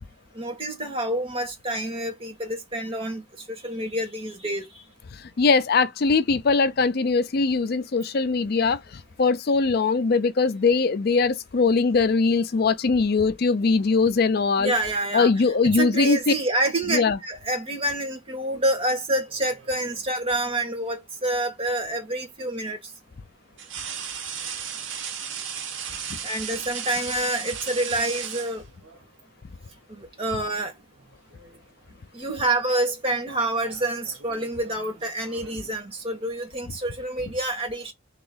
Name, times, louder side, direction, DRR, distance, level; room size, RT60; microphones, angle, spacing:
voice 1, 0.3-3.2 3.5-4.7 14.6-15.3 15.8-22.8 26.2-28.6 29.9-30.7 32.1-37.9, right 1 dB, 30° right, 1.4 m, -27 dB
voice 2, 5.4-8.8 9.2-14.7 15.1-16.3 16.8-17.2, left 4 dB, 55° left, 0.5 m, -21 dB
sound 1, 19.3-20.1 21.9-22.1 23.6-29.0 30.2-30.4 30.8-31.6 31.9-32.2 33.1-35.7, right 8 dB, 90° right, 1.0 m, -36 dB
3.0 x 2.9 x 3.9 m
head